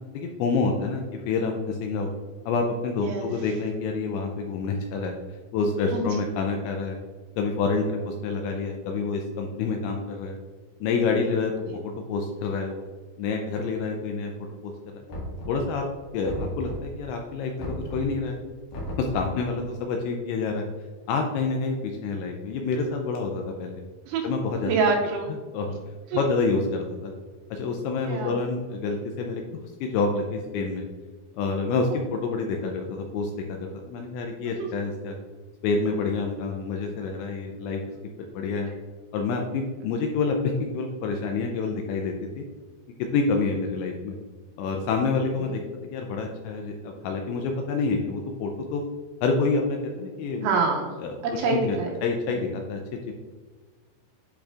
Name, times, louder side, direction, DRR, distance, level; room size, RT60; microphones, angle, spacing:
voice 1, 0.1-2.1 2.5-5.1 5.5-7.0 7.4-10.4 10.8-11.5 11.8-12.8 13.2-14.3 14.6-14.7 15.5-15.9 16.1-18.4 19.0-20.7 21.1-23.8 24.2-24.7 25.5-25.8 26.1-27.1 27.5-29.4 29.8-30.9 31.3-35.2 35.6-37.8 38.2-38.7 39.1-42.4 43.1-44.2 44.6-45.6 45.9-48.8 49.2-50.5 51.0-51.1 51.5-52.8, left 4 dB, 85° left, 2 dB, 2.7 m, -27 dB
voice 2, 5.9-6.3 11.7-11.8 24.1-24.3 24.6-25.3 26.1-26.2 28.0-28.3 34.6-34.7 45.4-45.5 50.4-51.0 51.2-51.9 52.3-52.5, right 4 dB, 85° right, -1 dB, 3.1 m, -26 dB
Knock, 15.1-15.8 16.2-17.0 17.6-18.2 18.7-19.4, equal, 60° left, 2.8 m, -35 dB
10.0 x 4.2 x 2.4 m, 1.5 s
omnidirectional pair, 5.6 m